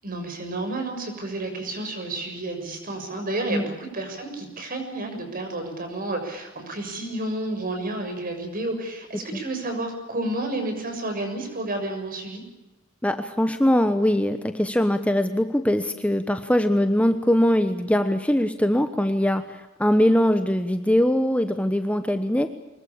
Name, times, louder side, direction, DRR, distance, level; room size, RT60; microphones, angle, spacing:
voice 1, 0.0-12.4, right 2 dB, 45° right, 5 dB, 6.7 m, -31 dB
voice 2, 13.0-22.5, equal, 5° left, 8 dB, 1.1 m, -22 dB
24.5 x 21.5 x 8.7 m, 1.0 s
head